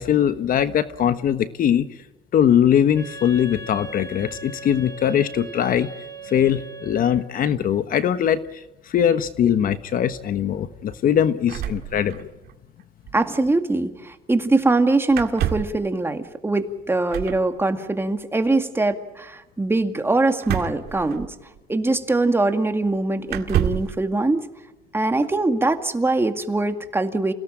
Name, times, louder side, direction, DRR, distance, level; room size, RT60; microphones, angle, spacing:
voice 1, 0.0-1.9 2.3-5.9 6.2-12.3, left 9 dB, 55° left, 12 dB, 1.2 m, -21 dB
Wind instrument woodwind instrument, 2.9-7.4, right 3 dB, 15° left, 4.9 m, -39 dB
sound 1, 11.5-12.5 12.8-12.9 13.1-13.3 15.1-15.8 17.1-17.5 20.4-21.6 22.4-22.5 23.3-24.0, right 10 dB, 70° right, 2.2 m, -28 dB
voice 2, 13.1-21.3 21.7-24.5 24.9-27.3, right 2 dB, 15° right, 7 dB, 2.1 m, -22 dB
28.5 x 17.5 x 8.9 m, 1.0 s
cardioid pair, 110°, 17 cm